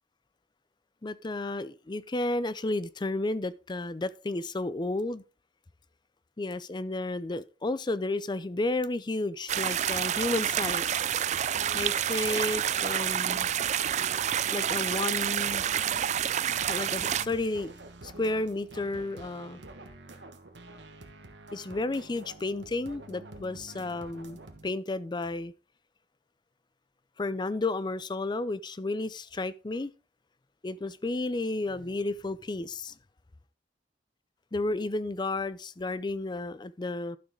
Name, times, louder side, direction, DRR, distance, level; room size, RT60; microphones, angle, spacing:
voice 1, 1.0-5.2 6.4-11.0 11.7-13.5 14.5-15.6 16.7-17.7 18.0-19.6 21.5-25.5 27.2-29.9 30.6-32.9 34.5-37.2, left 2 dB, 25° left, 0.5 m, -32 dB
sound 1, 9.5-17.3, right 10 dB, 40° right, 0.4 m, -28 dB
sound 2, 9.9-24.7, right 2 dB, 90° right, 1.4 m, -48 dB
12.0 x 6.3 x 3.8 m
head